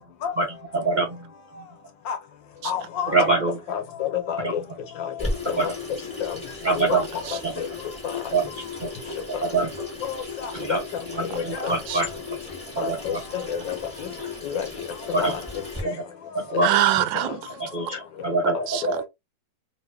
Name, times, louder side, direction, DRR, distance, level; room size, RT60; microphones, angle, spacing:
voice 1, 0.4-1.7 3.1-3.6 4.4-4.5 5.6-5.7 6.6-7.1 7.4-7.5 8.3-8.5 8.8-8.9 9.3-9.7 10.5-10.8 11.1-12.1 12.7-13.2 15.1-15.4 15.8-16.0 16.3-16.7 17.7-19.0, right 3 dB, 45° right, 0.5 m, -25 dB
voice 2, 2.6-3.3 3.7-4.6 5.0-5.7 6.2-6.4 6.7-7.0 7.6-7.7 10.0-10.8 11.2-11.7 12.8-14.1 14.4-14.7 15.2-15.4 16.5-16.6 18.8-18.9, left 8 dB, 80° left, 1.6 m, -29 dB
Water tap faucet / Sink (filling or washing), 5.2-15.8, left 3 dB, 5° left, 1.4 m, -36 dB
voice 3, 7.2-7.5 11.3-11.4 11.9-12.0 16.6-17.6 18.4-19.0, right 13 dB, 90° right, 1.3 m, -25 dB
3.0 x 2.9 x 3.4 m
omnidirectional pair, 2.0 m